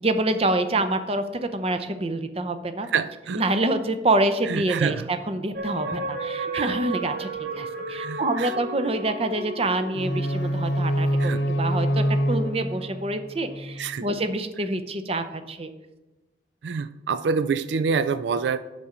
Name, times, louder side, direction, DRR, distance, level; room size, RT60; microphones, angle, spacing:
voice 1, 0.0-2.9 3.4-15.7, right 2 dB, 35° right, 9 dB, 0.6 m, -26 dB
voice 2, 2.9-3.4 4.5-5.1 6.5-6.7 7.9-8.5 11.2-11.4 13.8-14.0 16.6-18.6, right 5 dB, 75° right, 14 dB, 0.4 m, -26 dB
sound 1, 5.5-11.2 11.7-11.8, right 3 dB, 55° right, 1.0 m, -33 dB
sound 2, 9.9-14.0, equal, 80° left, 1.0 m, -26 dB
8.4 x 6.8 x 5.0 m, 1.1 s
head